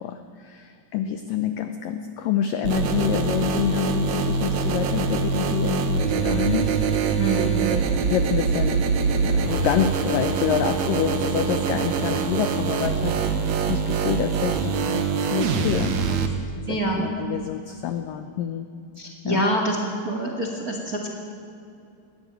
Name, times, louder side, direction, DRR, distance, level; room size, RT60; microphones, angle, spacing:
voice 1, 0.0-6.8 7.6-7.8 8.0-8.8 9.2-16.2 16.7-18.7 19.3-19.4, left 9 dB, 85° left, 8 dB, 1.9 m, -27 dB
sound 1, 2.6-16.3, right 5 dB, 65° right, 1.8 m, -24 dB
voice 2, 7.2-7.7 16.7-17.1 19.0-19.8 20.0-21.1, right 2 dB, 35° right, 1 dB, 1.6 m, -26 dB
20.5 x 16.5 x 9.1 m, 2.6 s
omnidirectional pair, 5.2 m